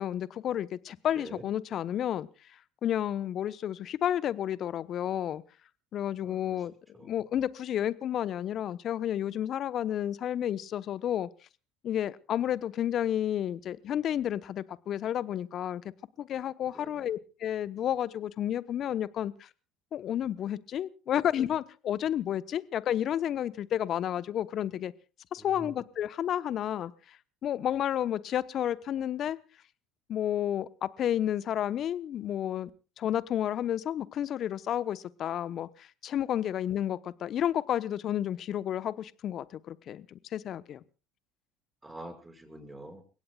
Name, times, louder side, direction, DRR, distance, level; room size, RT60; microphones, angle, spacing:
voice 1, 0.0-2.3 2.8-5.4 5.9-11.3 11.8-15.8 16.2-19.5 19.9-24.9 25.3-26.9 27.4-29.4 30.1-32.7 33.0-40.8, left 10 dB, 50° left, 15 dB, 1.0 m, -31 dB
voice 2, 1.1-1.5 6.2-6.6 7.0-7.1 16.7-17.1 25.4-25.7 41.8-43.0, right 1 dB, 15° right, 6 dB, 5.9 m, -46 dB
30.0 x 17.0 x 2.4 m, 0.36 s
hypercardioid pair, 65°, 0 cm